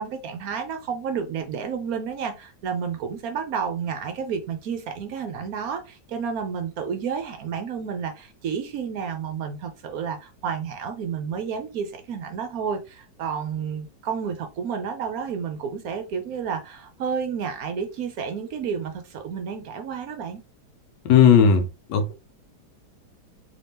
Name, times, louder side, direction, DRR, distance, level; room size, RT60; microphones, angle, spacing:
voice 1, 0.0-20.4, right 6 dB, 65° right, 1.0 m, -31 dB
voice 2, 21.0-22.2, left 7 dB, 85° left, 1.3 m, -17 dB
3.3 x 2.8 x 3.4 m
omnidirectional pair, 1.8 m